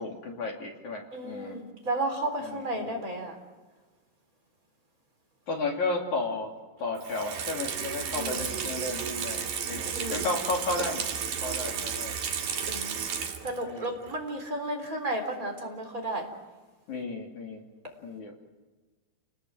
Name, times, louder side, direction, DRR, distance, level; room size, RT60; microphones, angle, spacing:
voice 1, 0.0-1.6 2.4-3.0 5.5-6.5 6.8-11.1 11.4-12.1 13.6-14.0 16.9-17.6 18.0-18.3, left 3 dB, 45° left, 1 dB, 3.7 m, -33 dB
voice 2, 1.1-3.3 8.1-8.5 9.9-10.3 12.7-13.0 13.4-16.3, right 1 dB, 20° right, 3 dB, 3.7 m, -33 dB
Water tap faucet / Sink (filling or washing), 7.0-13.7 14.1-14.2, right 7 dB, 55° right, 3.1 m, -33 dB
29.0 x 20.0 x 7.8 m, 1.3 s
omnidirectional pair, 5.1 m